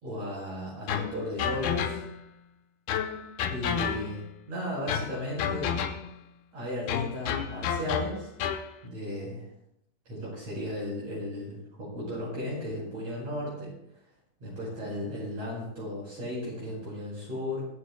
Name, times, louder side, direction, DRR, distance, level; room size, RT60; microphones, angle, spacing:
voice 1, 0.0-2.0 3.5-5.8 6.5-8.3 8.8-9.5 10.1-13.7 14.4-17.7, left 1 dB, 45° right, -6 dB, 6.5 m, -35 dB
sound 1, 0.9-2.3 2.9-4.3 4.9-6.2 6.9-8.7, left 8 dB, 90° left, 2.9 m, -31 dB
22.5 x 14.5 x 2.2 m, 0.75 s
omnidirectional pair, 4.3 m